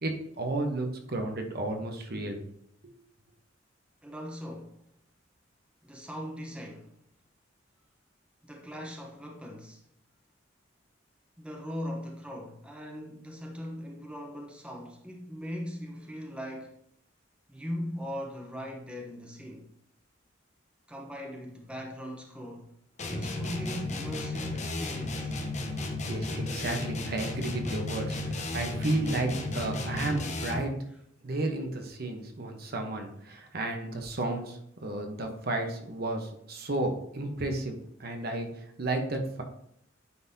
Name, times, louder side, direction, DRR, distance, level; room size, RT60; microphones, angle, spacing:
voice 1, 0.0-2.4 2.8-2.9 25.8-30.7 31.2-39.4, right 2 dB, 50° right, 0.9 m, -33 dB
voice 2, 4.0-4.8 5.8-6.9 8.4-9.8 11.4-16.7 17.5-19.7 20.9-22.7 23.1-25.4, equal, 5° right, 0.8 m, -39 dB
sound 1, 23.0-30.8, left 2 dB, 35° left, 0.8 m, -34 dB
9.5 x 3.9 x 2.7 m
head